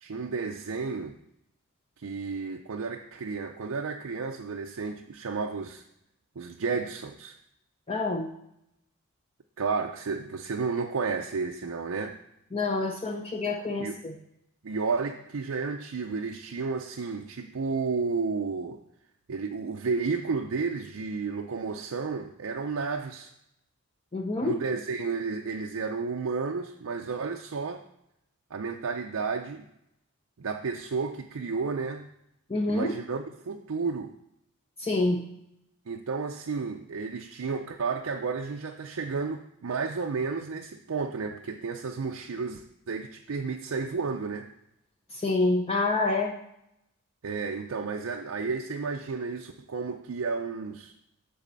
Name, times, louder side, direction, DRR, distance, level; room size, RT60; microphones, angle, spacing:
voice 1, 0.0-1.2 2.0-5.8 6.4-7.4 9.6-12.2 13.8-14.0 14.6-18.8 19.3-23.3 24.4-27.8 28.5-29.7 30.4-32.1 32.7-34.1 35.9-44.5 47.2-50.9, right 4 dB, 70° right, 3 dB, 0.5 m, -32 dB
voice 2, 7.9-8.3 12.5-14.2 24.1-24.6 32.5-33.0 34.8-35.3 45.1-46.4, left 2 dB, 25° left, 1 dB, 0.6 m, -27 dB
7.3 x 4.2 x 6.7 m, 0.80 s
head